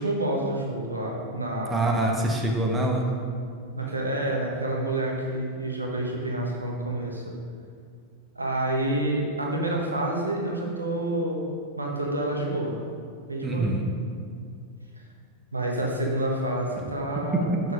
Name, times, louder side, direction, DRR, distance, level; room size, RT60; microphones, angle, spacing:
voice 1, 0.0-1.7 3.7-7.3 8.3-11.4 11.8-12.8 13.3-13.8 15.5-17.6, right 1 dB, 80° right, -1 dB, 1.1 m, -28 dB
voice 2, 1.7-3.1 13.4-13.8 17.3-17.6, right 1 dB, 15° right, 0 dB, 1.1 m, -25 dB
7.0 x 6.3 x 5.1 m, 2.2 s
figure-of-eight pair, 90°, 0 cm